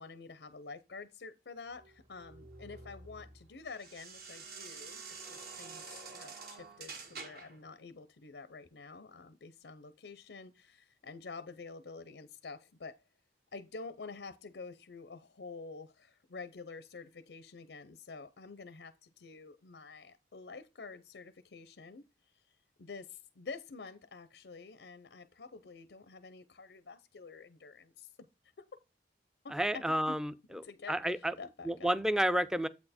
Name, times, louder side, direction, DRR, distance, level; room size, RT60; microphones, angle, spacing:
voice 1, 0.0-13.0 13.5-22.0 22.5-28.3 28.6-28.7 29.4-30.2 30.5-32.0, left 4 dB, 85° left, 0.6 m, -48 dB
sound 1, 1.8-7.6, right 4 dB, 60° right, 1.6 m, -48 dB
voice 2, 29.5-30.6 30.9-31.3 31.6-32.7, right 1 dB, 5° right, 0.4 m, -31 dB
8.3 x 4.4 x 4.2 m
head